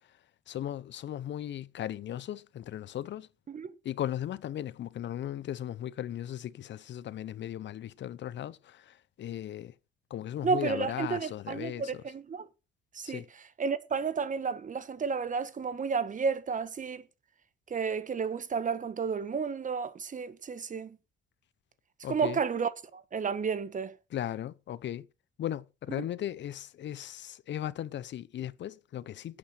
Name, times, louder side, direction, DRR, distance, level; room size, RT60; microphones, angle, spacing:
voice 1, 0.5-3.3 3.8-9.7 10.1-12.0 13.0-13.3 22.0-22.4 24.1-25.1 25.4-29.4, left 11 dB, 65° left, 0.8 m, -37 dB
voice 2, 10.4-12.5 12.9-13.2 13.6-17.0 17.7-21.0 22.1-23.9, right 5 dB, 40° right, 1.3 m, -32 dB
11.5 x 8.6 x 5.9 m
cardioid pair, 90°, 20 cm